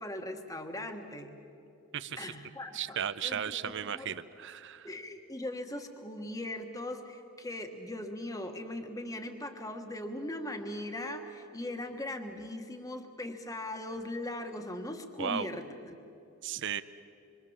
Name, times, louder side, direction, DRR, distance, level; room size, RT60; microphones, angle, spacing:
voice 1, 0.0-1.3 2.2-4.1 4.8-16.0, left 1 dB, 15° left, 5 dB, 1.4 m, -39 dB
voice 2, 1.9-2.3 2.7-4.9 15.2-15.5 16.4-16.8, right 8 dB, 55° right, 12 dB, 0.6 m, -35 dB
26.5 x 24.0 x 7.3 m, 2.9 s
head